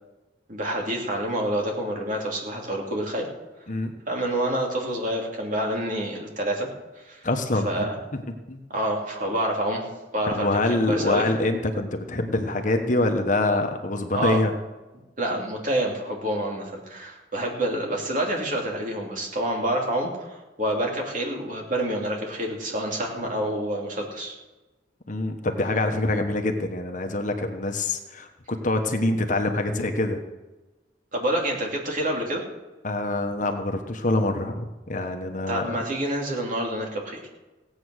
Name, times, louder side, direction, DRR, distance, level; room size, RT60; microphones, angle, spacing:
voice 1, 0.5-3.3 4.1-6.7 7.0-7.2 7.6-8.0 8.7-9.8 10.1-11.3 14.1-14.4 15.2-24.3 31.1-32.4 35.5-37.3, right 1 dB, 45° right, -1 dB, 2.9 m, -27 dB
voice 2, 7.2-7.9 8.5-8.7 10.3-14.5 25.1-30.2 32.8-35.7, left 2 dB, 45° left, 5 dB, 1.2 m, -25 dB
16.5 x 8.6 x 6.4 m, 1.1 s
head